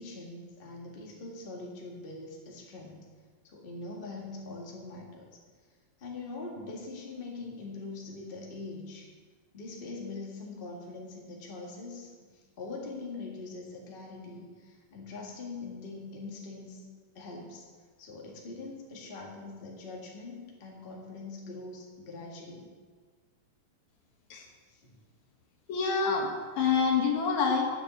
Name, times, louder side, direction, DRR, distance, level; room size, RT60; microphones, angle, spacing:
voice 1, 0.0-3.0 3.4-5.3 6.0-9.1 9.5-16.8 17.1-17.7 18.0-22.7 24.7-25.0, left 3 dB, 25° left, -2 dB, 1.5 m, -43 dB
voice 2, 25.7-27.6, left 5 dB, 75° left, 0 dB, 2.8 m, -27 dB
10.0 x 6.6 x 7.8 m, 1.5 s
omnidirectional pair, 3.4 m